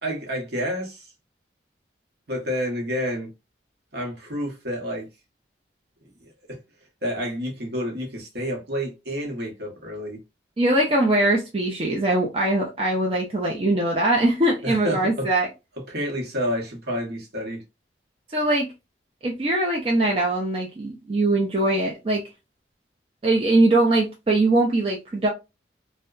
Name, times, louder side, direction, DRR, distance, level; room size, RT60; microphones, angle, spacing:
voice 1, 0.0-1.1 2.3-3.3 3.9-5.1 6.5-6.6 7.0-10.2 14.6-15.3 15.9-17.6, equal, 60° right, 0.9 m, -29 dB
voice 2, 10.6-15.5 18.3-18.7 19.2-22.2 23.2-25.3, right 2 dB, 30° right, 0.4 m, -21 dB
2.7 x 2.1 x 2.3 m
head